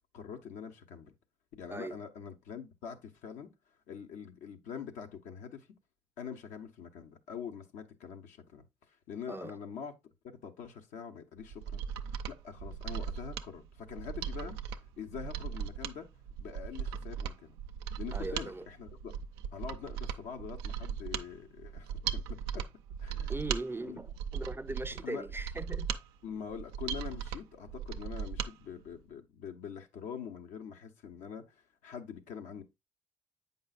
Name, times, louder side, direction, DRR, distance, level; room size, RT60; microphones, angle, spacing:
voice 1, 0.1-1.1 1.6-3.5 3.9-5.7 6.2-8.7 9.1-9.9 10.4-14.6 15.0-16.1 16.4-17.5 18.0-19.1 19.5-22.6 23.0-23.4 23.8-24.0 25.0-25.3 26.2-32.6, left 7 dB, 75° left, 0.9 m, -44 dB
Mechanisms, 11.4-28.5 28.9-29.0, right 8 dB, 90° right, 0.4 m, -38 dB
voice 2, 18.1-18.7 23.3-25.9, right 2 dB, 15° right, 0.5 m, -39 dB
7.9 x 5.4 x 2.4 m
hypercardioid pair, 50°, 13 cm